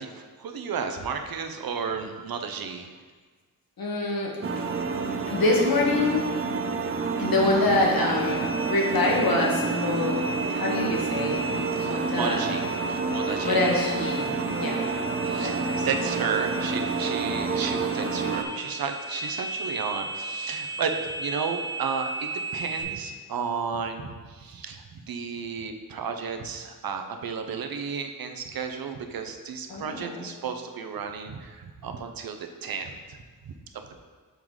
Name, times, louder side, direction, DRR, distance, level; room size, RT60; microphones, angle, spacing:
voice 1, 0.0-2.9 7.7-7.8 11.7-13.6 15.2-33.2 33.4-33.6 33.9-34.0, right 6 dB, 85° right, 6 dB, 0.7 m, -33 dB
voice 2, 3.8-4.7 5.3-6.2 7.2-8.4 8.7-10.2 10.5-12.4 13.4-14.9 15.3-15.8 29.7-30.3, left 2 dB, 85° left, -1 dB, 1.3 m, -26 dB
sound 1, 4.4-18.4, right 4 dB, 40° right, 0.5 m, -29 dB
sound 2, 8.1-22.8, right 2 dB, 35° left, 1.9 m, -36 dB
6.8 x 3.8 x 4.6 m, 1.4 s
wide cardioid pair, 140°, 35 cm